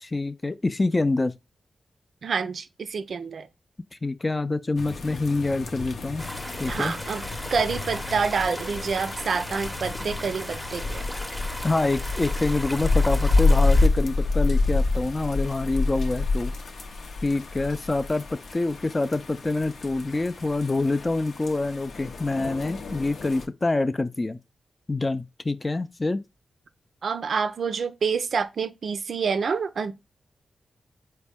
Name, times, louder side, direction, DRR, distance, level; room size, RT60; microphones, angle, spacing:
voice 1, 0.0-1.3 3.9-6.3 6.6-7.0 11.6-16.5 17.2-24.4 24.9-26.2, left 2 dB, 30° left, 0.3 m, -26 dB
voice 2, 2.2-3.5 6.7-7.2 7.5-11.1 27.0-29.9, right 5 dB, 70° right, 0.4 m, -27 dB
sound 1, 4.8-23.5, left 3 dB, 75° left, 0.6 m, -28 dB
sound 2, 6.2-13.9, equal, 5° left, 0.7 m, -37 dB
4.1 x 2.1 x 3.5 m
cardioid pair, 55°, 0 cm